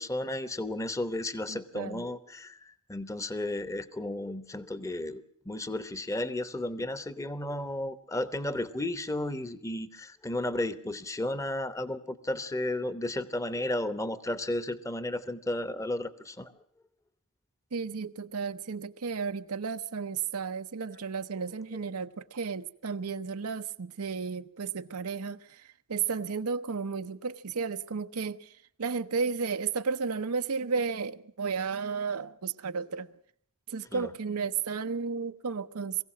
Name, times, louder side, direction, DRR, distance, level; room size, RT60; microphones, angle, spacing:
voice 1, 0.0-16.5 33.9-34.1, left 1 dB, 15° left, 0.9 m, -33 dB
voice 2, 1.5-2.1 17.7-28.5 28.8-33.1 33.7-36.0, right 5 dB, 85° right, 0.7 m, -33 dB
22.5 x 16.0 x 7.5 m
head